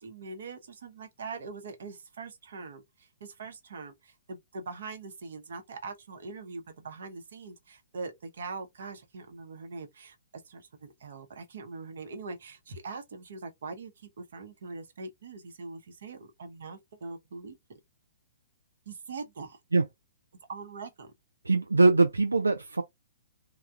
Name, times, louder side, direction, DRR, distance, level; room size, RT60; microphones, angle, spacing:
voice 1, 0.0-2.8 3.2-10.1 10.5-17.6 18.9-19.6 20.5-21.1, right 4 dB, 60° right, 0.9 m, -42 dB
voice 2, 21.4-22.8, right 3 dB, 80° right, 0.4 m, -22 dB
3.3 x 2.3 x 2.6 m
figure-of-eight pair, 120°, 0 cm